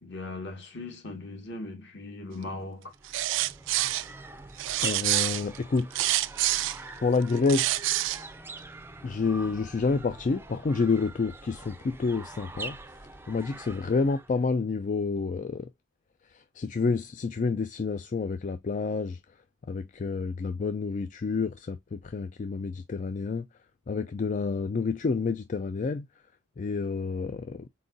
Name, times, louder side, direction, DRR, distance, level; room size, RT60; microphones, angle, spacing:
voice 1, 0.0-2.9, left 2 dB, 60° left, 1.7 m, -39 dB
sound 1, 2.9-14.5, right 2 dB, 10° right, 0.5 m, -44 dB
sound 2, 3.0-4.1 4.6-6.8 7.3-8.2, right 15 dB, 65° right, 0.3 m, -27 dB
voice 2, 4.8-5.9 7.0-7.8 9.0-12.8 13.3-15.7 16.6-19.2 19.7-23.5 23.9-26.1 26.6-27.7, left 4 dB, 40° left, 0.4 m, -28 dB
4.5 x 3.9 x 2.5 m
head